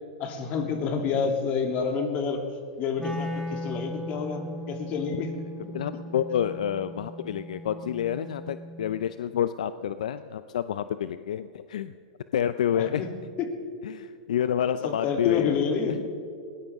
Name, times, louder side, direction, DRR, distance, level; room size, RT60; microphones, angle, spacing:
voice 1, 0.2-2.4 2.8-5.3 5.6-5.7 12.7-13.6 14.8-16.0, left 6 dB, 40° left, 3 dB, 2.9 m, -29 dB
Wind instrument woodwind instrument, 3.0-9.1, equal, ahead, 3.1 m, -38 dB
voice 2, 5.7-11.9 12.3-13.0 13.8-15.6 15.9-16.1, left 9 dB, 75° left, 13 dB, 0.5 m, -29 dB
20.5 x 18.5 x 3.6 m, 2.6 s
hypercardioid pair, 115°, 4 cm